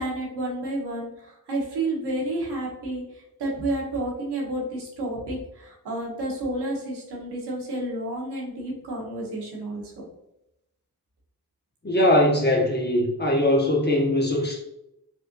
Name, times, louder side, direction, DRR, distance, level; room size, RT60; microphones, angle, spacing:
voice 1, 0.0-3.0 3.4-9.8, right 1 dB, 85° right, -3 dB, 1.2 m, -30 dB
voice 2, 11.8-14.6, left 1 dB, 25° left, -1 dB, 0.8 m, -21 dB
4.2 x 2.5 x 2.5 m, 0.85 s
cardioid pair, 50°, 39 cm